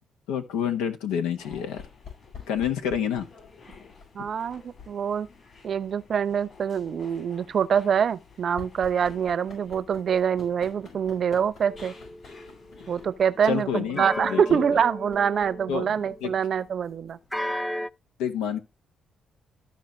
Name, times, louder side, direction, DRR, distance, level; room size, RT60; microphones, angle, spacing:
voice 1, 0.3-1.8 2.5-3.3 12.8-12.9 13.5-14.6 15.7-15.9 16.2-16.3 18.2-18.6, left 8 dB, 85° left, 1.1 m, -28 dB
sound 1, 1.4-17.6, left 6 dB, 70° left, 5.6 m, -51 dB
sound 2, 1.4-13.5, left 4 dB, 50° left, 6.0 m, -53 dB
voice 2, 4.1-5.3 5.6-11.9 12.9-17.2, right 7 dB, 60° right, 0.7 m, -25 dB
sound 3, 11.6-13.1 14.0-16.4 17.3-17.9, left 1 dB, 10° left, 0.4 m, -35 dB
13.5 x 4.6 x 3.2 m
hypercardioid pair, 50°, 0 cm